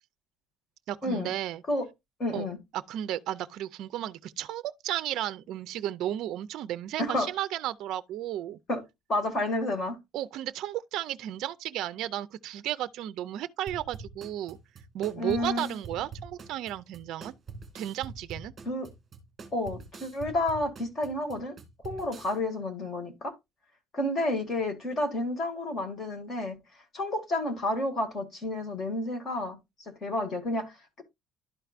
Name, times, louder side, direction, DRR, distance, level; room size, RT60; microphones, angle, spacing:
voice 1, 0.9-1.6 2.3-2.5 2.7-8.6 10.1-14.6 14.9-17.3 17.7-18.5, right 12 dB, 55° right, 0.4 m, -33 dB
voice 2, 2.2-2.6 7.0-7.3 8.7-8.8 9.1-10.0 15.2-15.7 18.7-18.9 19.5-21.6 21.8-23.4 23.9-26.6 26.9-31.0, left 1 dB, 30° left, 1.9 m, -30 dB
sound 1, 13.7-22.4, right 4 dB, 25° right, 1.9 m, -45 dB
12.0 x 4.5 x 2.4 m
cardioid pair, 160°, 0 cm